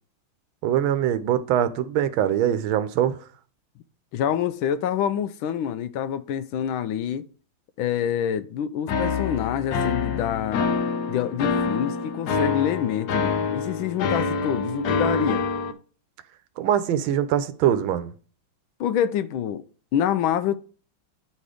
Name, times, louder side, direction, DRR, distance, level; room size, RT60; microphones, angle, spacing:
voice 1, 0.6-3.2 16.6-18.1, right 10 dB, 80° right, 1.5 m, -23 dB
voice 2, 4.1-7.2 7.8-10.7 11.1-15.5 18.8-19.6 19.9-20.6, left 9 dB, 80° left, 1.3 m, -26 dB
sound 1, 8.9-15.7, left 5 dB, 65° left, 1.0 m, -26 dB
9.3 x 4.3 x 4.9 m
omnidirectional pair, 2.3 m